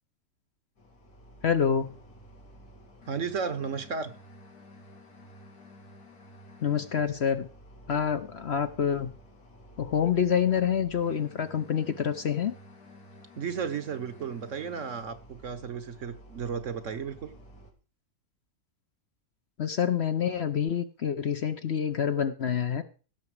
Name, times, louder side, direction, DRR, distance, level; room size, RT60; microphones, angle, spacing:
sound 1, 0.8-17.7, equal, 80° left, 2.9 m, -52 dB
voice 1, 1.4-2.0 6.6-7.5 7.9-9.1 9.8-12.5 19.6-22.8, left 8 dB, 50° left, 9 dB, 1.0 m, -27 dB
voice 2, 3.1-4.1 13.4-17.3, right 6 dB, 55° right, 12 dB, 1.3 m, -34 dB
16.0 x 6.9 x 4.9 m, 0.36 s
omnidirectional pair, 1.6 m